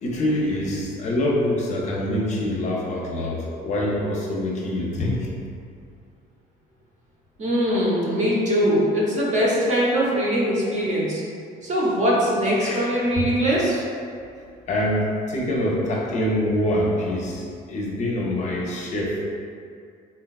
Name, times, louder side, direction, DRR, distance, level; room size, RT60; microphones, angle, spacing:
voice 1, 0.0-5.3 12.6-12.9 13.1-13.2 14.7-19.2, left 1 dB, 45° left, -3 dB, 0.5 m, -25 dB
voice 2, 7.4-11.2 11.6-13.8, equal, 45° right, -5 dB, 0.8 m, -21 dB
3.7 x 2.2 x 2.3 m, 2.3 s
cardioid pair, 110°, 17 cm